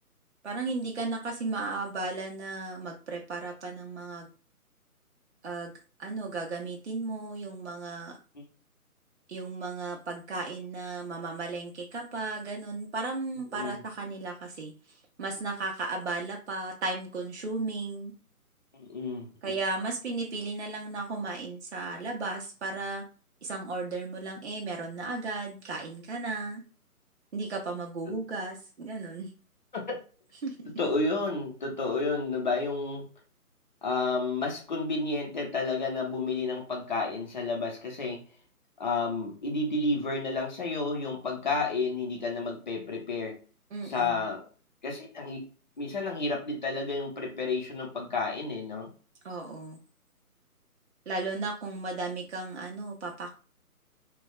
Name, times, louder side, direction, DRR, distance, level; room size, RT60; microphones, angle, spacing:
voice 1, 0.4-4.3 5.4-5.7 6.0-8.2 9.3-18.1 19.4-23.0 23.4-26.6 27.3-29.3 30.4-30.7 43.7-44.2 49.2-49.8 51.1-53.3, right 3 dB, 50° right, 0 dB, 0.7 m, -35 dB
voice 2, 18.7-19.5 28.1-28.2 29.7-30.0 30.8-33.1 33.8-38.2 38.8-43.4 43.8-44.4 44.8-45.5 45.8-48.9, left 3 dB, 30° left, 0 dB, 0.7 m, -31 dB
3.2 x 2.3 x 2.3 m, 0.37 s
figure-of-eight pair, 145°, 45 cm